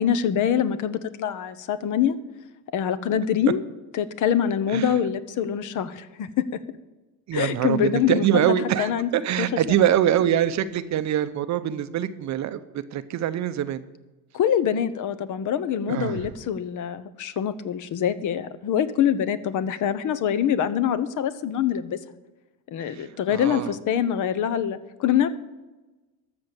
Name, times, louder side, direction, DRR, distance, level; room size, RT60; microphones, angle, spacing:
voice 1, 0.0-2.2 2.7-3.6 3.9-6.6 7.3-8.5 8.8-9.1 9.4-9.5 14.3-22.0 22.7-25.3, left 9 dB, 45° left, 14 dB, 0.9 m, -24 dB
voice 2, 7.3-13.8 15.9-16.2 22.8-23.7, right 10 dB, 40° right, 12 dB, 0.7 m, -24 dB
Sigh, 15.9-16.4, right 9 dB, 85° right, 1.1 m, -35 dB
13.0 x 6.8 x 7.0 m, 1.1 s
supercardioid pair, 105°, 43 cm